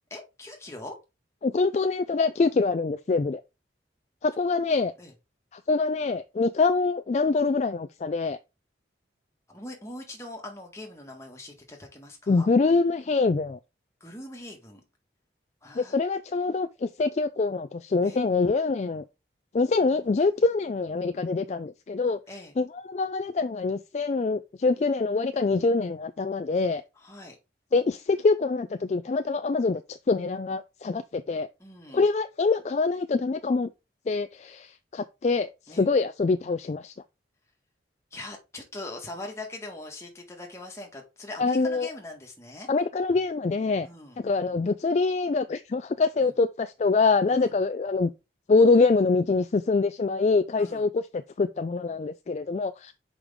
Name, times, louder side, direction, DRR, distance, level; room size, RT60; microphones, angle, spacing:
voice 1, 0.1-1.0 5.0-5.1 9.5-12.5 14.0-14.8 15.6-16.0 18.0-18.2 22.3-22.5 27.0-27.4 31.6-32.1 35.7-35.9 38.1-42.7 43.8-44.2 46.2-46.3 47.3-47.5 50.6-50.8, left 2 dB, 15° left, 1.7 m, -41 dB
voice 2, 1.4-3.4 4.2-4.9 5.5-8.4 12.3-13.6 15.8-19.0 19.5-22.2 22.6-26.8 27.7-31.5 31.9-33.7 34.1-36.9 41.4-41.9 42.7-43.9 44.2-48.1 48.5-52.9, left 3 dB, 40° left, 0.3 m, -25 dB
6.2 x 5.2 x 3.6 m
head